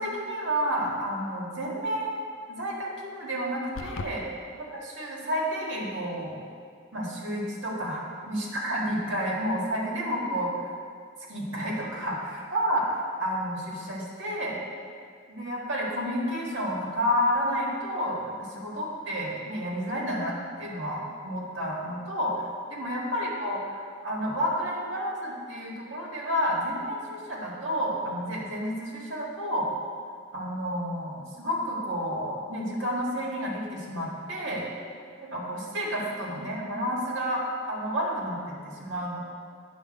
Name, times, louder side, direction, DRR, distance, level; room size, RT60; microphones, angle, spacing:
voice 1, 0.0-4.2 5.0-6.4 6.9-10.7 11.3-14.6 15.3-29.7 30.3-34.7 35.3-39.2, equal, 65° right, -4 dB, 1.7 m, -30 dB
sound 1, 3.8-4.2, left 4 dB, 80° left, 0.4 m, -35 dB
9.3 x 3.6 x 6.4 m, 2.1 s
head